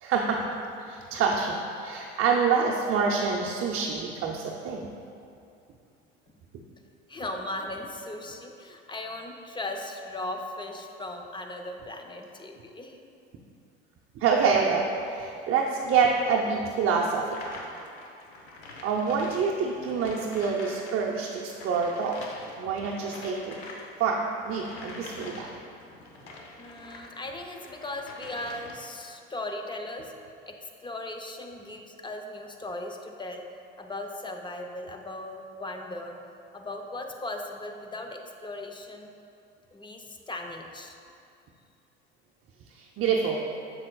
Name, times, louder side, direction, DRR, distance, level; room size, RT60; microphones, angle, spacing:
voice 1, 0.0-0.4 0.9-4.9 14.1-17.6 18.8-22.2 22.6-23.6 24.0-25.5 42.7-43.4, right 5 dB, 45° right, -2 dB, 0.7 m, -26 dB
voice 2, 7.1-13.0 26.6-30.1 30.5-33.5 33.8-36.2 36.5-39.1 39.7-41.0, left 2 dB, 15° left, 4 dB, 0.6 m, -38 dB
sound 1, 17.2-21.0 21.2-27.1 27.5-29.0, left 2 dB, 85° left, 0.8 m, -45 dB
7.3 x 6.3 x 2.3 m, 2.5 s
hypercardioid pair, 70°, 31 cm